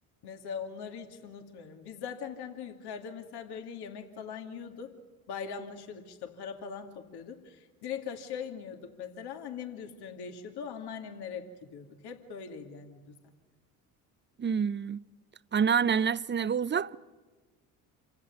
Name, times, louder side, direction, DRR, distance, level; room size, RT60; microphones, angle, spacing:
voice 1, 0.2-4.9 5.3-13.1, left 7 dB, 65° left, 2.6 m, -41 dB
voice 2, 14.4-15.0 15.5-17.0, right 7 dB, 25° right, 0.7 m, -27 dB
27.5 x 16.5 x 9.7 m
hypercardioid pair, 60°, 43 cm